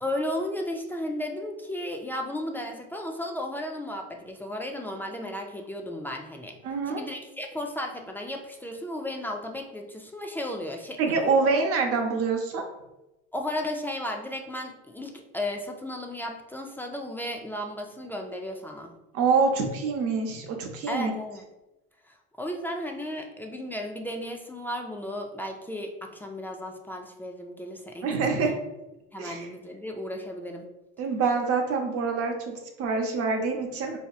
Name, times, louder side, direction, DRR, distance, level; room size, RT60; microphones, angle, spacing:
voice 1, 0.0-6.5 6.9-11.4 13.3-18.9 20.9-21.4 22.1-28.5 29.1-30.7, left 1 dB, 5° left, 2 dB, 0.3 m, -34 dB
voice 2, 6.6-7.0 11.0-12.6 19.1-21.1 28.0-28.6 29.2-29.5 31.0-34.0, right 4 dB, 50° right, 3 dB, 0.7 m, -26 dB
4.3 x 2.7 x 2.4 m, 0.95 s
supercardioid pair, 105°, 31 cm